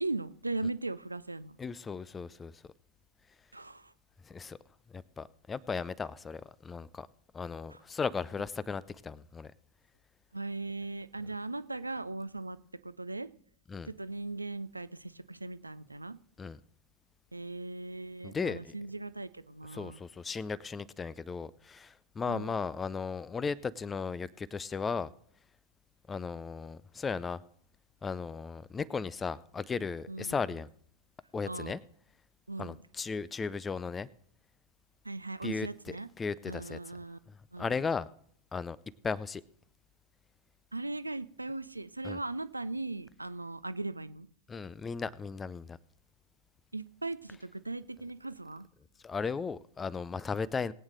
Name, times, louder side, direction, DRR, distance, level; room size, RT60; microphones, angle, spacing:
voice 1, 0.0-1.6 3.5-3.9 7.7-7.8 10.3-12.6 12.8-13.3 13.8-16.2 17.3-20.0 22.3-22.6 30.1-30.4 31.5-31.8 32.5-32.8 35.0-36.1 36.5-37.2 37.5-37.7 40.7-44.3 46.7-48.7, right 2 dB, 85° right, 15 dB, 0.5 m, -38 dB
voice 2, 1.6-2.6 4.3-4.6 4.9-7.1 7.3-9.5 13.7-13.9 16.4-16.6 18.2-18.7 19.7-25.1 26.1-27.4 28.0-30.7 31.3-31.8 32.6-34.1 35.4-35.7 36.2-36.8 37.6-38.1 38.5-38.8 39.0-39.4 42.0-42.2 44.5-45.8 49.0-50.7, left 5 dB, 15° left, 21 dB, 0.5 m, -36 dB
21.5 x 8.9 x 3.2 m, 0.62 s
figure-of-eight pair, 90°, 0 cm